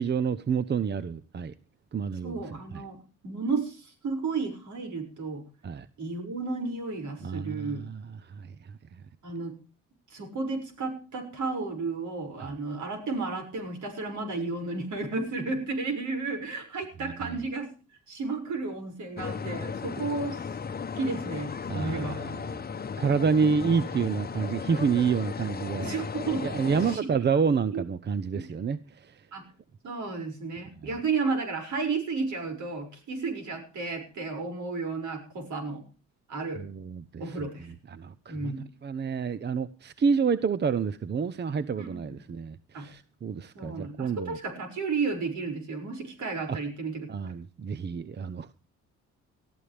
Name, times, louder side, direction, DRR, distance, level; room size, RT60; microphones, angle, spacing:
voice 1, 0.0-1.5 1.9-2.4 2.7-2.8 5.6-5.9 7.2-8.7 17.0-17.4 21.7-22.6 23.0-25.9 26.4-29.3 30.8-30.9 36.6-37.5 37.9-38.6 38.8-44.4 46.5-46.6 47.1-48.5, right 6 dB, 35° right, 0.8 m, -29 dB
voice 2, 2.2-3.0 3.2-5.4 6.0-7.8 9.2-9.5 10.1-17.7 18.1-20.4 20.9-22.2 23.4-23.6 25.8-27.0 27.7-27.8 28.3-28.5 29.3-29.4 29.8-35.8 36.3-36.6 37.2-37.7 38.3-38.6 41.8-42.2 42.7-42.9 43.5-47.3, right 4 dB, 70° right, 6.3 m, -33 dB
sound 1, 19.2-27.0, left 6 dB, 30° left, 0.9 m, -36 dB
20.0 x 14.0 x 3.4 m
cardioid pair, 90°, 30 cm